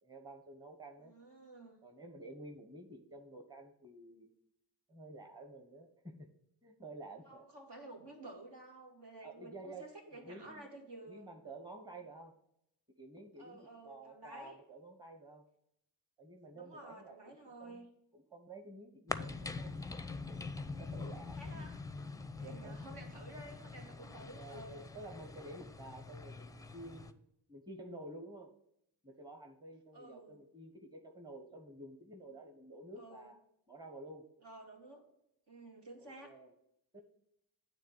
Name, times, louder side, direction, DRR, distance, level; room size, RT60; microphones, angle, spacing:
voice 1, 0.0-1.1 1.8-4.3 4.9-6.3 6.6-7.5 9.2-10.7 11.1-12.3 13.0-15.4 16.2-17.9 18.1-20.0 20.6-21.7 22.4-22.8 24.2-27.1 27.5-28.5 29.0-33.4 33.7-34.2 36.0-36.5 36.9-37.0, right 2 dB, 10° right, 5 dB, 1.2 m, -51 dB
voice 2, 1.0-1.8 7.3-11.3 13.4-14.6 16.5-17.9 21.3-21.8 22.4-24.8 29.9-30.4 33.0-33.3 34.4-35.0 35.5-36.3, right 2 dB, 60° right, 1 dB, 2.0 m, -52 dB
sound 1, 19.1-27.1, left 3 dB, 10° left, 0.6 m, -44 dB
9.2 x 3.4 x 6.6 m, 0.78 s
hypercardioid pair, 40°, 45 cm